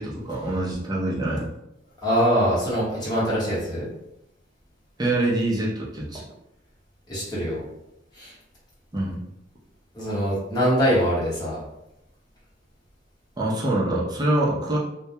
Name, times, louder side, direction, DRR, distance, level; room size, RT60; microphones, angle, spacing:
voice 1, 0.0-1.5 5.0-6.2 8.9-9.2 13.4-14.8, right 1 dB, 20° right, -5 dB, 0.5 m, -25 dB
voice 2, 2.0-3.9 7.1-7.6 8.1-8.3 9.9-11.6, equal, 20° left, -8 dB, 1.0 m, -23 dB
2.2 x 2.1 x 2.8 m, 0.85 s
head